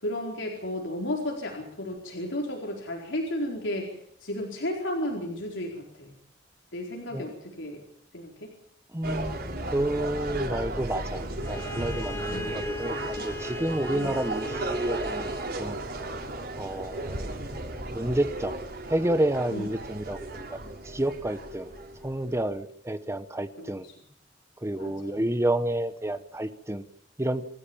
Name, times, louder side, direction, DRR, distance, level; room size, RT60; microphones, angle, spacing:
voice 1, 0.0-3.9 4.2-6.1 6.7-7.8 8.1-8.5 12.3-12.6 13.9-14.1 19.5-19.7 23.6-24.0 24.8-25.2, left 1 dB, 80° left, 0 dB, 4.6 m, -33 dB
voice 2, 8.9-9.4 9.7-15.3 15.6-15.8 16.6-17.3 17.9-18.6 18.9-21.7 22.0-23.8 24.6-26.8 27.2-27.4, right 1 dB, 15° right, 11 dB, 1.0 m, -30 dB
sound 1, 9.0-22.5, right 2 dB, 55° right, 6.1 m, -35 dB
Bowed string instrument, 11.4-15.6, left 1 dB, 15° left, 2.4 m, -37 dB
27.0 x 15.0 x 7.3 m, 0.68 s
head